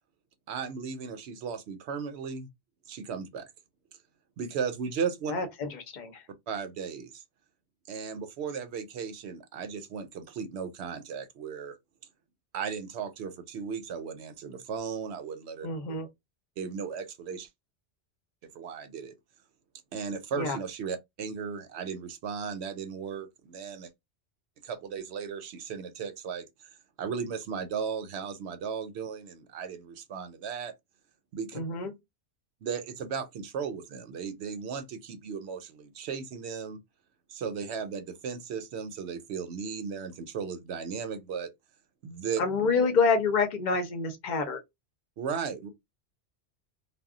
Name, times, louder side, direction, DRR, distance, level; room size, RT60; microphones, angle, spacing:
voice 1, 0.5-2.5 2.9-3.5 4.4-5.3 6.5-7.2 7.9-11.8 12.5-15.7 16.6-17.5 18.5-19.1 19.9-23.9 24.6-26.5 27.0-30.7 31.3-31.6 32.6-36.8 37.3-41.5 42.0-42.4 45.2-45.7, right 6 dB, 70° right, 0.8 m, -36 dB
voice 2, 5.3-6.2 15.6-16.1 20.4-20.6 31.5-31.9 42.4-44.6, left 4 dB, 45° left, 0.8 m, -27 dB
2.2 x 2.1 x 3.6 m
omnidirectional pair, 1.2 m